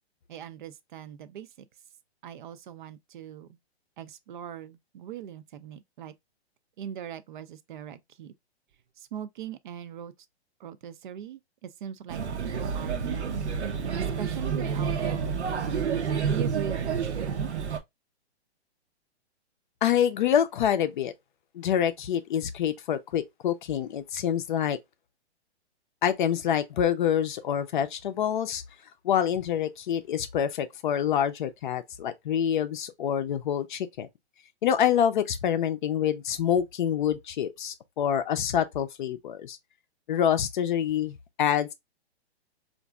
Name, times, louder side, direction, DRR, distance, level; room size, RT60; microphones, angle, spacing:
voice 1, 0.3-1.7 2.2-3.6 4.0-6.1 6.8-8.3 9.0-10.1 10.6-13.5 14.0-15.7 16.3-17.5, right 10 dB, 50° right, 0.4 m, -40 dB
Male speech man speaking / Child speech kid speaking / Chatter, 12.1-17.8, right 6 dB, 90° right, 0.8 m, -29 dB
voice 2, 19.8-21.1 21.5-24.8 26.0-28.6 29.0-34.1 34.6-39.6 40.1-41.7, left 9 dB, 50° left, 0.5 m, -26 dB
4.0 x 2.5 x 2.3 m
hypercardioid pair, 145°, 33 cm